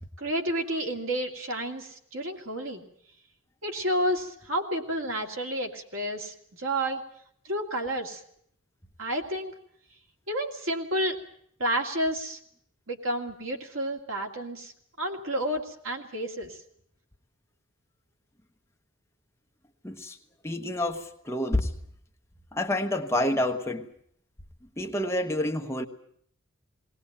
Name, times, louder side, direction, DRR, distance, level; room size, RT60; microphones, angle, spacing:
voice 1, 0.2-2.8 3.6-7.0 7.4-8.2 9.0-9.5 10.3-11.2 11.6-12.4 12.9-14.7 15.0-16.6, right 1 dB, 70° right, 2 dB, 2.6 m, -30 dB
voice 2, 19.8-20.2 20.4-21.7 22.5-23.9 24.8-25.9, left 1 dB, 10° left, 4 dB, 1.0 m, -28 dB
19.5 x 18.5 x 8.8 m, 0.65 s
head